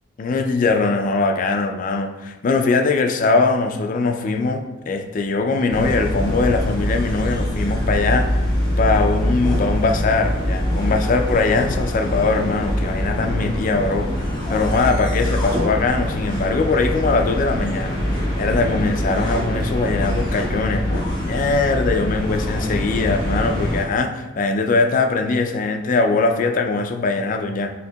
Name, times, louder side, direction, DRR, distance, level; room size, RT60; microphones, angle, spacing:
voice 1, 0.2-8.5 8.8-14.1 14.5-18.0 18.4-27.7, left 3 dB, 40° left, 5 dB, 0.4 m, -21 dB
sound 1, 5.7-23.8, equal, 20° left, 1.3 m, -23 dB
6.6 x 2.8 x 2.2 m, 1.1 s
head